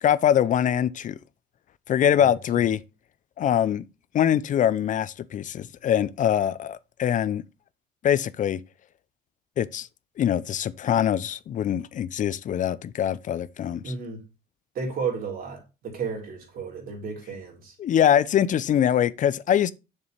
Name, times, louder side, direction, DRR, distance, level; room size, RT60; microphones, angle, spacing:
voice 1, 0.0-1.2 1.9-2.8 3.4-3.8 4.1-7.4 8.0-8.6 9.6-9.9 10.2-13.9 17.8-19.7, left 9 dB, 50° left, 0.6 m, -23 dB
voice 2, 2.1-2.6 13.8-14.2 14.7-17.7, right 5 dB, 60° right, 3.6 m, -33 dB
7.0 x 6.7 x 3.3 m
cardioid pair, 110°, 17 cm